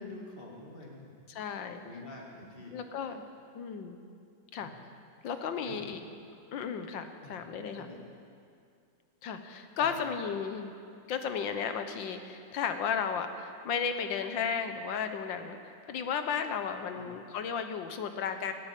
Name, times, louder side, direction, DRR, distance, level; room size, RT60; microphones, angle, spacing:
voice 1, 0.0-1.2 1.8-2.8 4.6-4.8 5.6-5.8 7.2-7.3 7.7-8.1 9.8-10.0 16.9-17.1, left 2 dB, 30° left, -2 dB, 2.4 m, -46 dB
voice 2, 1.3-1.8 2.7-3.2 3.6-4.0 4.5-4.7 5.2-6.0 6.5-7.9 9.2-10.7 11.1-15.6 15.9-18.5, left 6 dB, 85° left, 8 dB, 1.7 m, -34 dB
17.0 x 8.7 x 8.3 m, 2.4 s
omnidirectional pair, 2.0 m